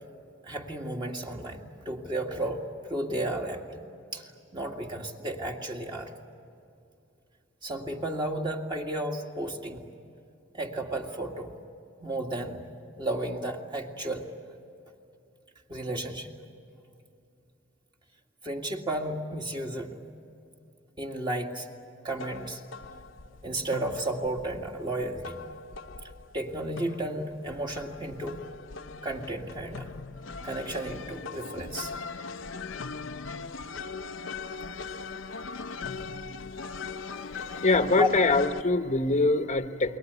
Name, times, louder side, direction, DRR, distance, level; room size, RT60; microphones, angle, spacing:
voice 1, 0.4-3.8 4.1-4.2 4.5-6.1 7.6-9.8 10.5-11.5 12.0-12.6 13.0-14.3 15.7-16.3 18.4-20.0 21.0-21.7 22.0-22.6 23.4-25.4 26.3-28.4 29.0-30.0 30.4-31.9 37.5-38.1, right 1 dB, 25° right, 1 dB, 2.1 m, -33 dB
sound 1, 22.2-38.6, left 4 dB, 70° left, 0.7 m, -40 dB
voice 2, 37.6-40.0, left 3 dB, 35° left, 9 dB, 1.1 m, -24 dB
29.0 x 22.5 x 8.2 m, 2.6 s
head